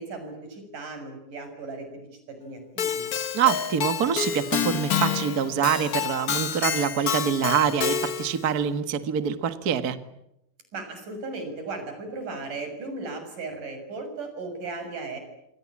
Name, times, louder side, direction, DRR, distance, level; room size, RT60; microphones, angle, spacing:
voice 1, 0.0-3.1 10.7-15.2, right 3 dB, 75° right, 7 dB, 8.1 m, -36 dB
Keyboard (musical), 2.8-8.4, left 7 dB, 65° left, 0.9 m, -28 dB
voice 2, 3.3-10.0, right 8 dB, 40° right, 10 dB, 1.5 m, -25 dB
28.0 x 24.0 x 8.7 m, 0.82 s
omnidirectional pair, 3.7 m